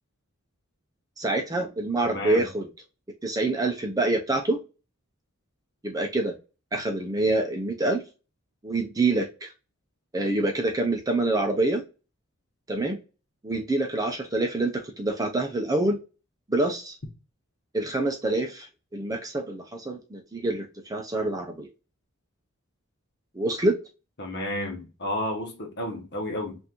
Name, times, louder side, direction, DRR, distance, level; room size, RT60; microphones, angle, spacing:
voice 1, 1.2-2.7 3.2-4.6 5.8-6.3 6.7-8.0 8.6-9.5 10.1-11.8 12.7-13.0 13.4-16.0 16.5-17.0 17.7-21.7 23.3-23.8, right 2 dB, 15° right, 0.6 m, -26 dB
voice 2, 2.0-2.5 24.2-26.6, left 1 dB, 50° left, 1.2 m, -31 dB
5.7 x 2.6 x 2.9 m
head